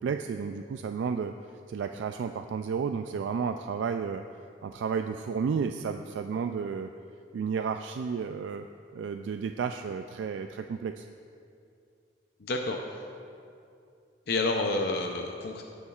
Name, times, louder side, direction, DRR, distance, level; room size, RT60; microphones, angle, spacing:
voice 1, 0.0-1.3 1.7-4.2 4.6-6.9 7.3-8.7 8.9-11.1, right 6 dB, 80° right, 7 dB, 0.3 m, -32 dB
voice 2, 12.4-13.0 14.3-15.6, left 2 dB, 65° left, 2 dB, 0.6 m, -29 dB
17.0 x 7.0 x 2.4 m, 2.5 s
head